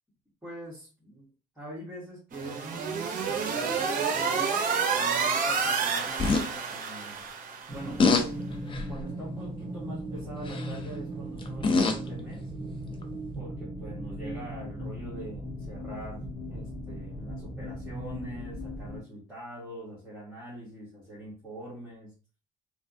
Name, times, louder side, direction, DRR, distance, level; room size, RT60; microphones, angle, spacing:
voice 1, 0.4-1.3 1.5-7.3 7.7-8.4 8.9-12.5 13.3-22.1, right 1 dB, 5° right, -9 dB, 1.6 m, -43 dB
sound 1, 2.3-7.9, right 5 dB, 50° right, 0.7 m, -29 dB
sound 2, 6.2-6.4 8.0-8.3 8.7-9.0 10.5-10.8 11.4-12.1 13.0-13.1, left 4 dB, 30° left, 0.5 m, -24 dB
sound 3, 7.7-19.0, equal, 25° right, 1.4 m, -38 dB
3.2 x 2.3 x 2.6 m, 0.34 s
cardioid pair, 110°, 17 cm